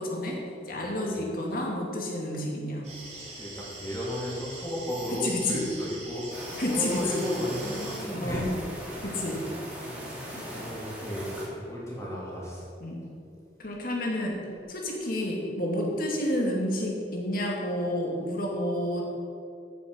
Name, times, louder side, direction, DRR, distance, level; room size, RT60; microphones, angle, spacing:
voice 1, 0.0-2.8 5.1-5.6 6.6-7.3 8.2-8.4 9.0-9.4 12.8-13.0 13.6-14.4 14.7-19.0, left 1 dB, 50° left, -1 dB, 2.3 m, -30 dB
voice 2, 0.7-1.1 3.2-8.5 9.0-9.2 9.8-12.7, left 1 dB, 15° left, -5 dB, 3.0 m, -34 dB
sound 1, 2.8-8.0, right 2 dB, 40° right, 3.3 m, -43 dB
sound 2, 6.3-11.5, equal, 10° right, 2.7 m, -39 dB
14.0 x 7.0 x 6.3 m, 2.6 s
head